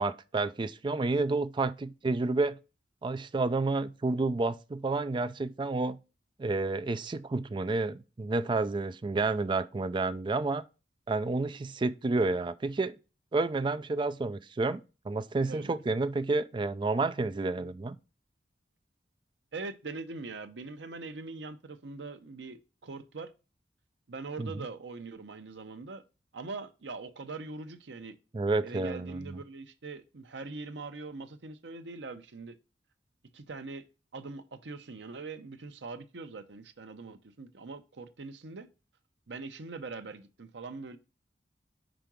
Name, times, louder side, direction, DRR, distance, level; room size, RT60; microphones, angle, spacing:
voice 1, 0.0-2.6 3.0-6.0 6.4-10.6 11.1-13.0 13.3-18.0 24.4-24.5 28.3-29.4, right 3 dB, 25° right, 0.4 m, -30 dB
voice 2, 19.5-23.3 24.1-26.0 26.3-28.2 28.6-32.6 33.3-33.9 34.1-38.7 39.3-41.0, right 3 dB, 85° right, 0.7 m, -42 dB
5.1 x 4.6 x 6.0 m
head